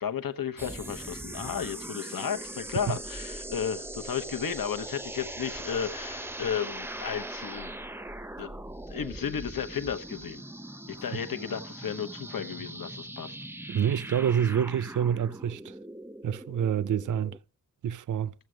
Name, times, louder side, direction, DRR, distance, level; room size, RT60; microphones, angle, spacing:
voice 1, 0.0-7.7 8.4-8.5 8.9-10.4 10.9-13.3, left 8 dB, 85° left, 0.9 m, -33 dB
sound 1, 0.6-17.4, right 1 dB, 5° right, 0.5 m, -40 dB
voice 2, 13.7-15.8 16.2-17.4 17.8-18.3, right 9 dB, 65° right, 0.5 m, -27 dB
14.0 x 8.1 x 6.2 m
wide cardioid pair, 75°, 34 cm